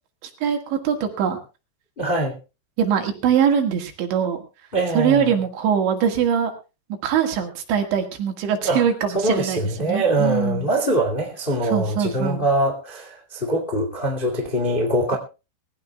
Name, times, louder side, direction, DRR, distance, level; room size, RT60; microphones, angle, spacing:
voice 1, 0.2-1.4 2.8-4.4 5.0-6.5 7.0-10.7 11.6-12.4, right 8 dB, 70° right, 4.1 m, -22 dB
voice 2, 2.0-2.4 4.7-5.3 8.6-8.8 9.1-15.2, right 1 dB, 25° left, 1.1 m, -23 dB
22.0 x 16.0 x 2.3 m
omnidirectional pair, 5.5 m